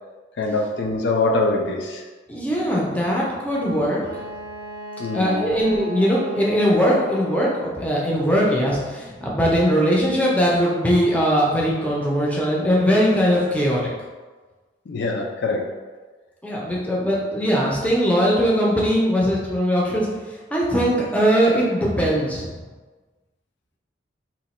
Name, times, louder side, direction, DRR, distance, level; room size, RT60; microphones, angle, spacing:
voice 1, 0.4-2.0 5.0-5.6 14.9-15.7, left 2 dB, 65° left, 1 dB, 0.4 m, -23 dB
voice 2, 2.3-4.1 5.1-13.9 16.4-20.1 20.5-22.5, equal, 10° left, -4 dB, 0.5 m, -20 dB
Wind instrument woodwind instrument, 4.0-7.7, equal, 60° right, 0.4 m, -36 dB
2.9 x 2.2 x 4.1 m, 1.3 s
head